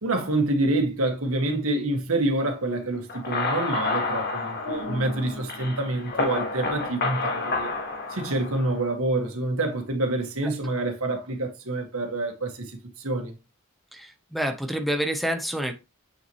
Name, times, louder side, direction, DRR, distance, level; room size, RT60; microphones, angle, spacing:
voice 1, 0.0-7.7 8.1-13.3, right 2 dB, 90° right, 1.9 m, -27 dB
sound 1, 3.1-8.9, left 3 dB, 50° left, 1.9 m, -30 dB
voice 2, 13.9-15.7, equal, ahead, 0.8 m, -28 dB
8.0 x 6.0 x 3.1 m
head